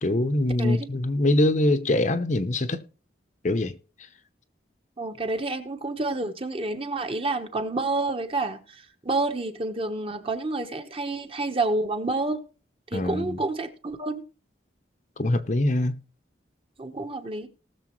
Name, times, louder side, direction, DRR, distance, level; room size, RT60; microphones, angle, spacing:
voice 1, 0.0-2.9 3.4-3.8 12.9-13.4 15.2-16.0, left 1 dB, 40° left, 0.7 m, -23 dB
voice 2, 5.0-12.4 12.9-14.2 16.8-17.5, right 2 dB, 30° right, 1.2 m, -29 dB
19.0 x 6.9 x 3.1 m
head